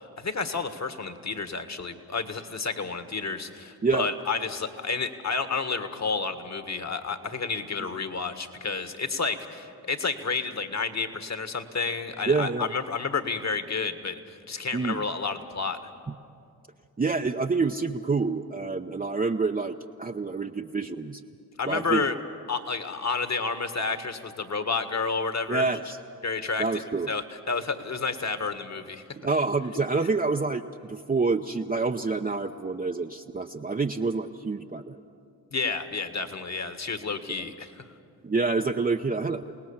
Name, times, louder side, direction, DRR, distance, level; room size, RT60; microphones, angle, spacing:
voice 1, 0.0-15.8 21.6-22.1 22.5-25.7 26.2-29.0 35.5-37.8, left 4 dB, 40° left, 9 dB, 1.8 m, -30 dB
voice 2, 12.3-12.7 14.7-15.0 17.0-21.2 21.7-22.1 25.5-26.0 26.6-27.1 29.2-30.6 30.9-35.0 38.2-39.4, right 4 dB, 20° right, 4 dB, 0.8 m, -27 dB
28.5 x 18.5 x 7.3 m, 2.5 s
hypercardioid pair, 45°, 42 cm